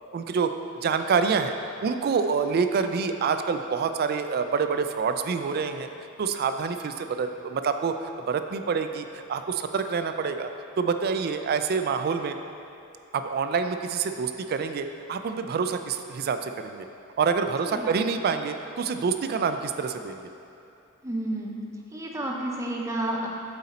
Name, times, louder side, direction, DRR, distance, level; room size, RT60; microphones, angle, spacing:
voice 1, 0.1-1.5 1.8-5.9 6.2-10.5 10.8-12.4 13.1-16.9 17.2-20.3, right 5 dB, 50° right, 8 dB, 0.3 m, -27 dB
voice 2, 17.7-18.0 21.0-21.6 21.9-23.3, right 1 dB, 15° right, -1 dB, 0.6 m, -31 dB
7.7 x 4.1 x 4.2 m, 2.7 s
head